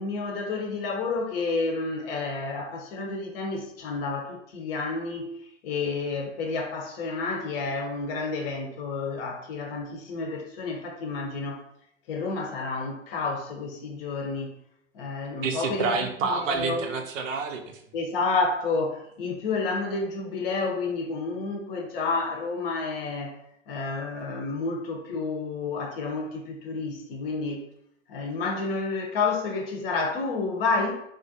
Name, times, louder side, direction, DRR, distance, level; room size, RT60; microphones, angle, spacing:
voice 1, 0.0-5.3 5.6-11.6 12.1-14.5 14.9-15.9 16.4-16.9 17.9-23.4 23.7-27.6 28.1-30.9, left 3 dB, 45° left, 2 dB, 0.7 m, -30 dB
voice 2, 15.4-17.8, right 4 dB, 70° right, 5 dB, 0.6 m, -28 dB
2.4 x 2.1 x 2.6 m, 0.74 s
hypercardioid pair, 110°, 39 cm